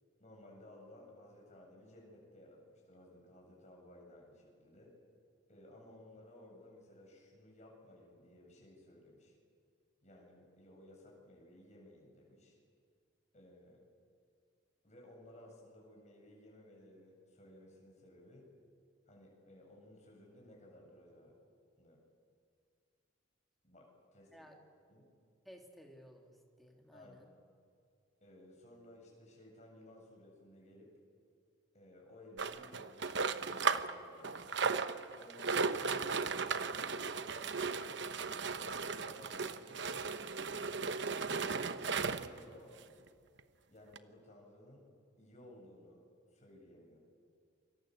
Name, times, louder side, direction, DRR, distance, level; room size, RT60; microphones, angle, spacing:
voice 1, 0.2-4.9 5.5-9.4 10.0-12.6 13.3-13.8 14.8-18.5 19.1-21.4 21.8-22.0 23.6-24.5 24.9-25.1 26.9-27.3 28.2-30.9 31.7-34.7 35.2-41.4 42.0-43.1 43.7-44.9 45.2-46.0 46.3-47.0, left 1 dB, 35° left, -1 dB, 7.7 m, -58 dB
voice 2, 25.4-27.3, equal, ahead, 1 dB, 2.8 m, -57 dB
sound 1, 32.4-33.9 34.2-42.4 43.1-43.2 43.4-43.5 44.0-44.1, right 4 dB, 60° right, 1.0 m, -36 dB
29.0 x 25.0 x 8.0 m, 2.3 s
head